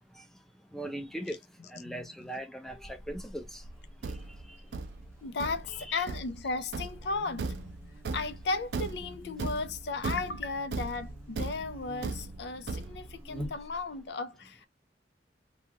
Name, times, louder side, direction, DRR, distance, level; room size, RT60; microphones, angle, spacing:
voice 1, 0.7-1.4 1.7-3.6, right 1 dB, ahead, 0.5 m, -39 dB
voice 2, 1.8-2.3 5.2-14.7, left 3 dB, 70° left, 0.5 m, -35 dB
Buzz, 2.7-14.1, equal, 15° right, 0.9 m, -49 dB
Thump thud, 3.6-13.2, right 3 dB, 65° right, 0.4 m, -38 dB
2.8 x 2.3 x 2.8 m
head